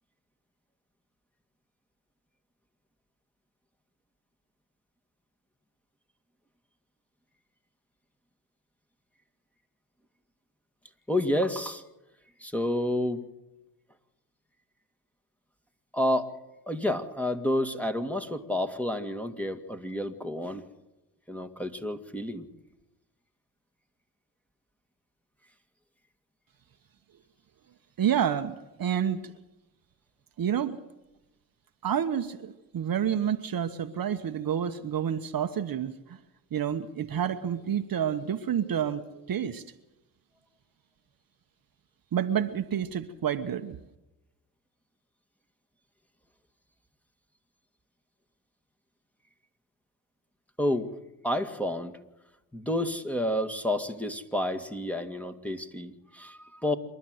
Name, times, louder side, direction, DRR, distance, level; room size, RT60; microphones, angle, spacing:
voice 1, 11.1-11.8 12.4-13.2 15.9-16.3 16.7-20.6 21.3-22.5 50.6-50.9 51.2-52.0 52.5-56.8, left 1 dB, 5° left, 2.0 m, -30 dB
voice 2, 28.0-29.2 30.4-30.8 31.8-36.2 36.5-39.6 42.1-43.8, right 9 dB, 45° right, 1.2 m, -29 dB
27.5 x 12.0 x 7.9 m
supercardioid pair, 75°, 48 cm